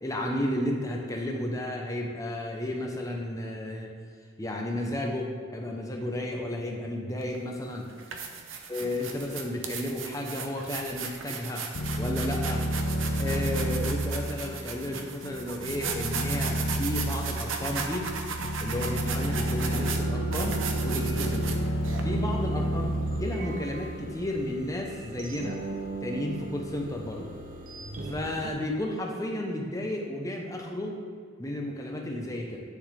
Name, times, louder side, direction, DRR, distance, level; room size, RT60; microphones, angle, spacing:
voice 1, 0.0-3.9 4.4-7.9 8.7-11.7 12.0-12.6 13.2-18.1 18.6-20.6 20.8-21.6 22.0-25.6 26.0-27.3 28.0-31.0 31.4-32.6, left 1 dB, 15° left, 0 dB, 0.8 m, -33 dB
sound 1, 7.2-7.4 7.9-22.0, right 5 dB, 75° right, 0.8 m, -36 dB
sound 2, 11.7-24.2, equal, 75° left, 0.8 m, -30 dB
sound 3, 19.8-28.5, right 2 dB, 45° right, 0.7 m, -39 dB
9.7 x 6.5 x 3.4 m, 2.1 s
head